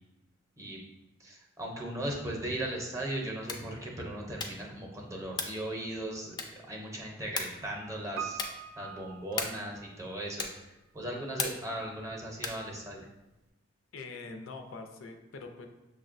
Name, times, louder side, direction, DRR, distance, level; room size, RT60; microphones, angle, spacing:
voice 1, 1.2-6.4 6.7-8.4 8.8-10.5 10.9-13.1, right 1 dB, 15° right, -1 dB, 0.6 m, -37 dB
sound 1, 3.4-3.8 4.3-4.7 5.3-5.7 6.3-6.7 7.3-7.7 8.3-8.7 9.3-9.7 10.4-10.7 11.4-11.8 12.4-12.7, left 4 dB, 20° left, 0.3 m, -37 dB
Piano, 8.2-10.2 10.5-10.6, right 8 dB, 80° right, 0.3 m, -42 dB
voice 2, 13.9-15.7, left 3 dB, 80° left, 5 dB, 0.4 m, -43 dB
6.2 x 2.1 x 2.5 m, 1.0 s
head